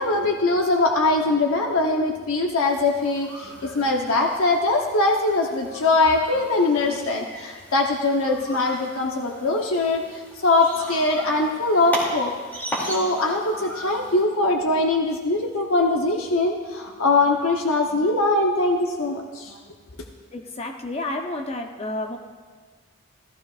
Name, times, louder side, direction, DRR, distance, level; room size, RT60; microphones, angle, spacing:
voice 1, 0.0-12.3 12.8-19.6, left 2 dB, 75° left, 1 dB, 0.9 m, -22 dB
sound 1, 2.6-14.2, equal, 10° left, 2.5 m, -37 dB
voice 2, 20.3-22.2, left 2 dB, 30° left, 4 dB, 0.7 m, -30 dB
15.0 x 14.0 x 2.4 m, 1.6 s
head